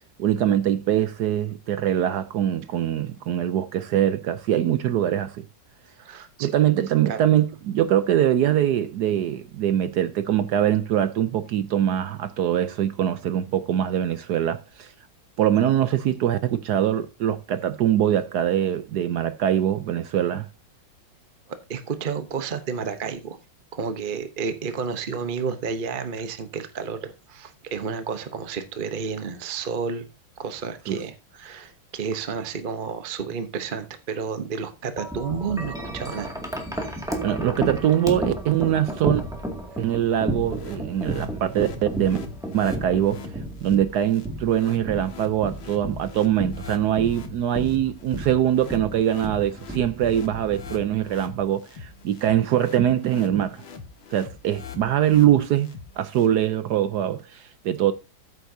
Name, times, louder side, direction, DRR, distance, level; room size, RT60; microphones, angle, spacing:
voice 1, 0.2-5.4 6.4-14.9 15.4-20.5 30.9-31.0 37.2-39.2 39.8-42.2 42.5-43.2 43.6-53.6 54.1-55.7 56.0-57.9, right 11 dB, 70° right, 1.0 m, -23 dB
voice 2, 6.0-6.5 7.1-7.2 21.5-23.4 23.7-30.1 30.4-36.3 36.9-37.1, right 5 dB, 45° right, 0.6 m, -31 dB
Wind chime, 35.0-51.2, right 1 dB, ahead, 1.9 m, -33 dB
sound 1, 40.3-56.3, left 5 dB, 85° left, 2.2 m, -43 dB
14.0 x 8.1 x 2.7 m
omnidirectional pair, 2.2 m